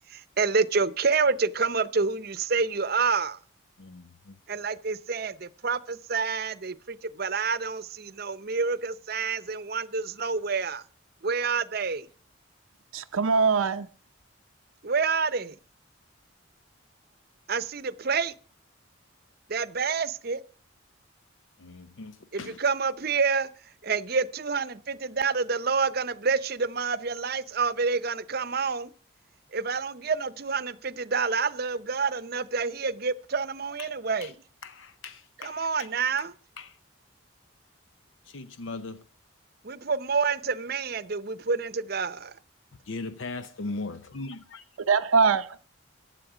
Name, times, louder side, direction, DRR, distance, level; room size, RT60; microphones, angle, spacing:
voice 1, 0.1-3.4 4.5-10.8 11.2-12.1 14.8-15.6 17.5-18.3 19.5-20.4 22.3-28.9 29.5-34.3 35.4-36.3 39.6-42.4, right 5 dB, 50° right, 0.7 m, -28 dB
voice 2, 3.8-4.4 21.6-22.6 33.8-33.9 34.2-34.3 34.6-35.7 36.6-36.8 38.3-39.0 42.9-44.6 44.9-45.0, left 3 dB, 75° left, 0.7 m, -39 dB
voice 3, 12.9-13.9 44.9-45.6, right 5 dB, 85° right, 0.6 m, -22 dB
15.5 x 9.9 x 5.0 m
head